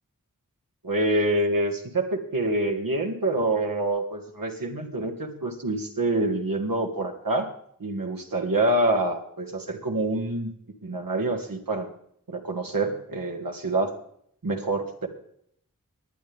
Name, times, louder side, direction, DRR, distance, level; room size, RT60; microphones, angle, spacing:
voice 1, 0.8-7.5 7.8-10.5 10.8-11.9 12.3-13.9 14.4-15.1, right 2 dB, 90° right, 2 dB, 1.8 m, -26 dB
19.0 x 10.5 x 3.5 m, 0.69 s
wide cardioid pair, 50°, 33 cm